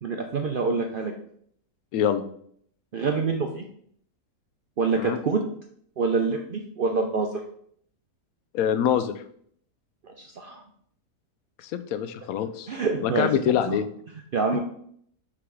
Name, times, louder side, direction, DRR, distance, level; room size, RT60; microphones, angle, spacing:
voice 1, 0.0-1.1 2.9-3.6 4.8-5.4 6.0-7.4 10.0-10.6 12.7-13.8 14.3-14.6, right 4 dB, 80° right, 3 dB, 0.4 m, -26 dB
voice 2, 1.9-2.2 5.0-5.2 8.5-9.1 11.6-12.7 13.0-13.9, left 9 dB, 70° left, 10 dB, 1.0 m, -25 dB
5.8 x 3.8 x 4.8 m, 0.64 s
omnidirectional pair, 1.7 m